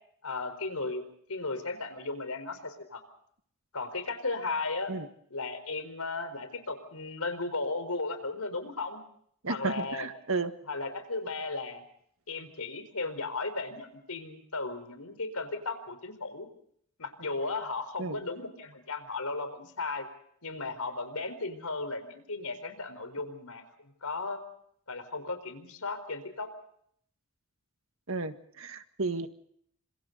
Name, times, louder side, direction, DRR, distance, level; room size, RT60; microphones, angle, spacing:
voice 1, 0.2-1.0 1.3-3.0 3.7-4.9 5.3-9.0 9.5-10.1 10.7-11.8 12.3-16.5 17.0-20.1 20.4-23.6 24.0-24.4 24.9-26.5, left 3 dB, 85° left, 10 dB, 4.5 m, -35 dB
voice 2, 9.4-10.5 18.0-18.2 28.1-29.3, right 3 dB, 70° right, 9 dB, 1.8 m, -33 dB
29.5 x 26.5 x 4.1 m, 0.67 s
head